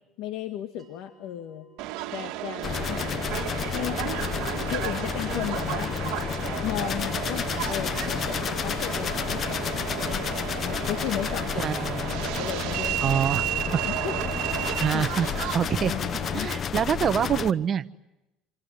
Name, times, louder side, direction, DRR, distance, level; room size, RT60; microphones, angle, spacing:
voice 1, 0.2-1.7 2.1-3.2 3.7-4.4 4.6-5.9 6.6-14.2 14.5-15.2 15.8-16.5, left 11 dB, 70° left, 7 dB, 1.7 m, -36 dB
sound 1, 0.8-11.3, right 6 dB, 5° right, 4.9 m, -64 dB
Subway metro underground, 1.8-16.4, right 15 dB, 70° right, 1.7 m, -33 dB
sound 2, 2.6-17.5, left 7 dB, 40° left, 1.0 m, -31 dB
voice 2, 11.6-12.0 13.0-13.8 14.6-15.9 16.3-18.0, right 8 dB, 40° right, 12 dB, 1.1 m, -26 dB
27.5 x 26.5 x 8.0 m, 0.95 s
supercardioid pair, 110°, 0 cm